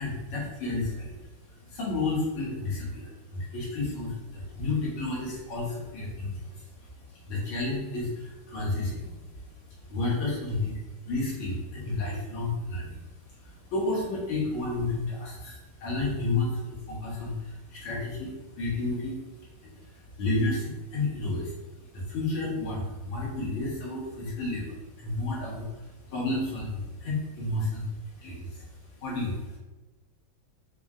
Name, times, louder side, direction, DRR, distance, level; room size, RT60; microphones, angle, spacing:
voice 1, 0.0-29.6, left 2 dB, 80° left, -5 dB, 2.1 m, -32 dB
5.2 x 2.1 x 3.6 m, 1.1 s
omnidirectional pair, 2.3 m